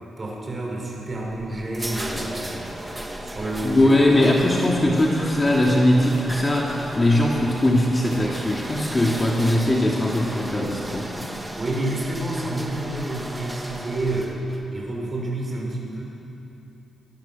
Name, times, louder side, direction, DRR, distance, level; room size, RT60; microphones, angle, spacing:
voice 1, 0.2-2.6 3.2-4.1 11.6-14.5 14.7-16.0, right 2 dB, 30° right, -2 dB, 6.5 m, -29 dB
sound 1, 1.6-14.6, right 1 dB, 10° right, 2.2 m, -35 dB
voice 2, 3.6-11.3, left 1 dB, 20° left, -2 dB, 3.0 m, -20 dB
26.0 x 22.5 x 7.5 m, 2.9 s
cardioid pair, 115°, 0 cm